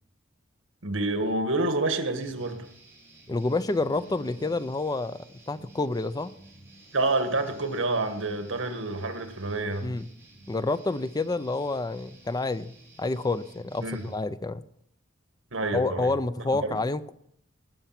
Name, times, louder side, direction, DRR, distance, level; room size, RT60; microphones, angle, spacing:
voice 1, 0.8-2.7 6.9-9.9 13.8-14.1 15.5-16.1 16.4-16.8, right 2 dB, 75° right, 7 dB, 1.7 m, -28 dB
sound 1, 2.2-14.2, right 2 dB, 15° right, 5.0 m, -54 dB
voice 2, 3.3-6.3 9.8-10.1 10.5-14.6 15.7-17.1, left 2 dB, 20° left, 14 dB, 0.4 m, -29 dB
sound 2, 3.6-5.5 6.5-8.0, left 4 dB, 75° left, 4.1 m, -54 dB
19.5 x 7.9 x 5.9 m, 0.72 s
head